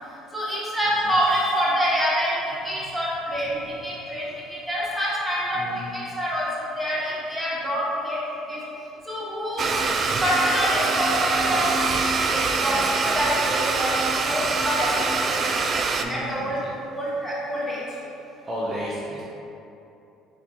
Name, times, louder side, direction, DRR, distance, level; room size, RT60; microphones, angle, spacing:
voice 1, 0.3-2.3 2.6-5.6 5.9-8.2 8.5-8.6 9.1-9.8 10.2-11.8 12.3-13.9 14.3-14.9 15.2-15.3 16.1-16.6 16.9-17.8, equal, 10° right, -7 dB, 1.3 m, -26 dB
voice 2, 5.5-5.9 16.0-16.5 18.4-19.2, equal, 25° right, -8 dB, 0.7 m, -32 dB
Domestic sounds home sounds, 9.6-16.0, right 4 dB, 45° right, 0.3 m, -24 dB
3.8 x 3.5 x 2.9 m, 2.9 s
hypercardioid pair, 65°, 0 cm